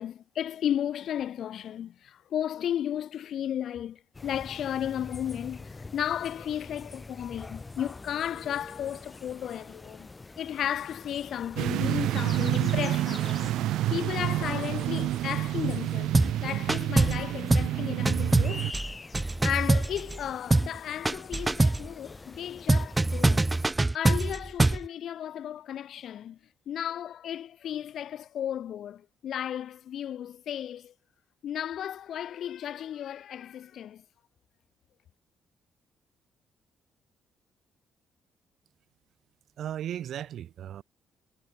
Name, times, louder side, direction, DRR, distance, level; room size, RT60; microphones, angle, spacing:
voice 1, 0.0-10.1 10.4-18.7 19.4-23.5 23.9-26.4 26.7-30.9 31.4-34.0, left 10 dB, 70° left, 0.5 m, -34 dB
sound 1, 4.1-23.7, left 3 dB, 25° left, 2.5 m, -46 dB
sound 2, 11.6-18.7, right 14 dB, 85° right, 0.3 m, -29 dB
sound 3, 16.1-16.4 16.7-17.2 17.5-17.8 18.1-20.2 20.5-20.8 21.1-21.9 22.7-24.9, right 2 dB, 15° right, 0.6 m, -24 dB
voice 2, 39.6-40.8, right 10 dB, 70° right, 3.1 m, -36 dB
cardioid pair, 90°, 0 cm